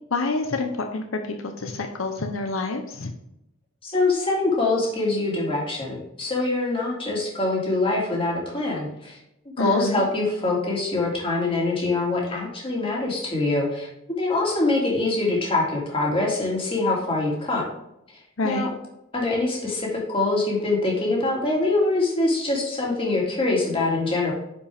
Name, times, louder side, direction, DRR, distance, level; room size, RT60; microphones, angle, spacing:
voice 1, 0.1-1.0 1.6-3.1 9.6-10.0 18.4-18.7, left 3 dB, 80° left, 4 dB, 0.8 m, -27 dB
voice 2, 3.8-9.2 9.6-13.9 14.2-17.7 18.4-18.7 19.1-24.3, left 2 dB, 25° left, -3 dB, 2.4 m, -24 dB
9.9 x 5.1 x 3.5 m, 0.83 s
head